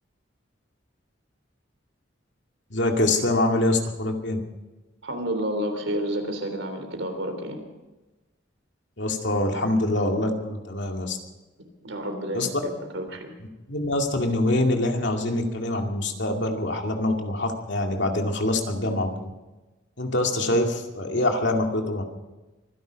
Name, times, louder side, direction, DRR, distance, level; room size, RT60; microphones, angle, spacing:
voice 1, 2.7-4.4 9.0-11.2 12.3-12.5 13.7-19.3 20.0-22.0, left 1 dB, 65° left, 3 dB, 2.3 m, -25 dB
voice 2, 5.0-7.6 11.8-13.3, right 1 dB, 80° right, 6 dB, 3.5 m, -30 dB
24.5 x 11.0 x 5.2 m, 1.1 s
head